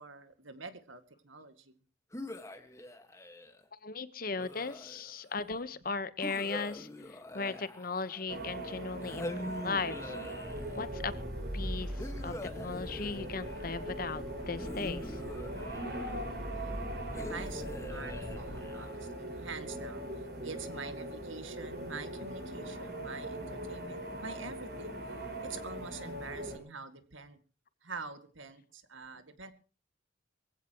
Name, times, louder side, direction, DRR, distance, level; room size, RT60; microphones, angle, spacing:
voice 1, 0.0-1.8 16.6-25.0 25.4-27.4 27.8-29.5, right 4 dB, 80° right, 9 dB, 2.1 m, -46 dB
sound 1, 2.1-3.6 4.4-5.3 6.2-8.4 9.0-10.9 12.0-13.7 14.6-16.2 17.1-19.1, left 1 dB, 15° left, 1.6 m, -44 dB
voice 2, 3.8-10.1 10.8-11.1 11.5-15.2 17.1-17.2, left 4 dB, 45° left, 14 dB, 1.1 m, -37 dB
sound 2, 8.3-26.6, right 1 dB, 50° right, 5.4 m, -41 dB
sound 3, 10.4-18.7, equal, ahead, 4.8 m, -42 dB
23.5 x 16.0 x 3.0 m, 0.36 s
head